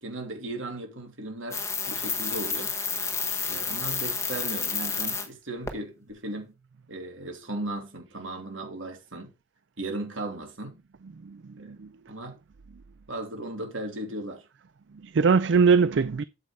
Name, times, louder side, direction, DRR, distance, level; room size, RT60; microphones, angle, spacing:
voice 1, 0.0-2.7 3.5-6.5 6.9-9.3 9.8-10.8 11.6-11.8 12.1-12.4 13.1-14.5, right 2 dB, 75° right, 2.9 m, -36 dB
sound 1, 1.5-5.3 5.7-5.8, left 5 dB, 15° left, 1.3 m, -30 dB
voice 2, 11.2-12.1 14.9-16.2, right 5 dB, 60° right, 0.4 m, -23 dB
8.8 x 8.0 x 3.3 m
head